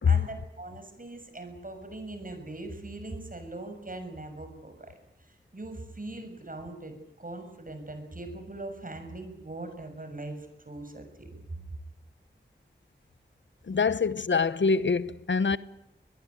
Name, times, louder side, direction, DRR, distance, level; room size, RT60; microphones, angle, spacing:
voice 1, 0.0-5.0 5.3-11.6, right 2 dB, 50° right, 6.9 m, -41 dB
voice 2, 13.6-15.6, left 5 dB, 80° left, 0.9 m, -24 dB
23.5 x 21.0 x 9.5 m
wide cardioid pair, 55°, 19 cm